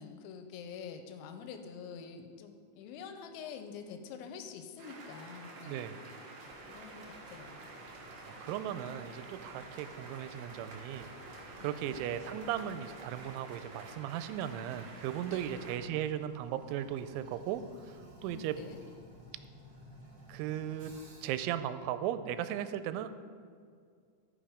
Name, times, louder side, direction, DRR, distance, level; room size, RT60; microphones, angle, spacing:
voice 1, 0.0-5.9 6.7-7.7 11.6-11.8 15.2-15.5 18.2-18.8, left 6 dB, 85° left, 7 dB, 3.0 m, -46 dB
sound 1, 4.8-15.8, right 2 dB, 65° right, 1.8 m, -49 dB
voice 2, 5.6-6.0 8.3-11.1 11.6-17.7 18.2-18.6 20.3-20.9 21.2-23.1, right 11 dB, 85° right, 11 dB, 3.0 m, -36 dB
Toilet flush, 6.4-21.4, equal, 45° right, 1.4 m, -55 dB
15.5 x 5.9 x 4.9 m, 2.1 s
omnidirectional pair, 5.4 m